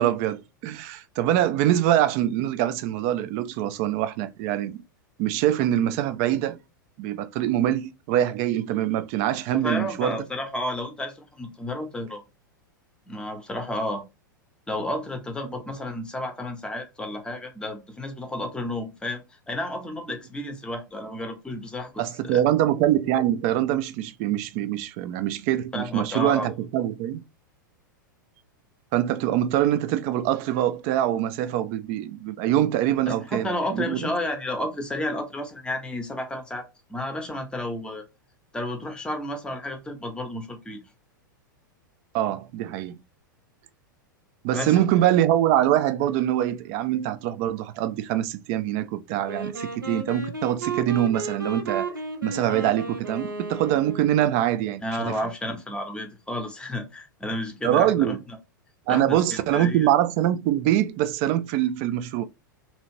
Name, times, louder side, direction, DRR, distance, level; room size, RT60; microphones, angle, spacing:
voice 1, 0.0-4.8 5.2-6.6 7.0-10.2 22.0-27.2 28.9-34.1 42.1-43.0 44.4-52.0 52.2-54.8 57.6-58.2 58.9-62.2, right 12 dB, 40° right, 0.4 m, -24 dB
voice 2, 9.5-12.2 13.1-14.0 14.7-22.4 25.7-26.5 33.1-38.0 38.5-40.8 44.5-44.8 54.8-58.4 58.9-59.9, left 1 dB, 10° left, 0.7 m, -32 dB
Wind instrument woodwind instrument, 49.2-54.4, right 2 dB, 85° right, 0.8 m, -33 dB
2.7 x 2.4 x 3.0 m
figure-of-eight pair, 95°, 11 cm